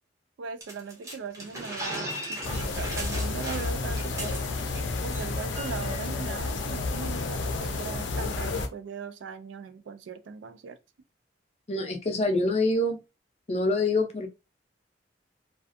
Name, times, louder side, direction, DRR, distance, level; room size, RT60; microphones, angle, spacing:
voice 1, 0.4-4.4 5.0-10.8, right 5 dB, 85° right, 0.3 m, -39 dB
sound 1, 0.6-4.8 5.1-5.3 5.6-5.9, right 1 dB, 15° right, 0.6 m, -37 dB
sound 2, 2.4-8.7, left 3 dB, 90° left, 0.5 m, -31 dB
voice 2, 11.7-13.0 13.5-14.3, left 2 dB, 35° left, 0.5 m, -25 dB
2.4 x 2.3 x 2.5 m
head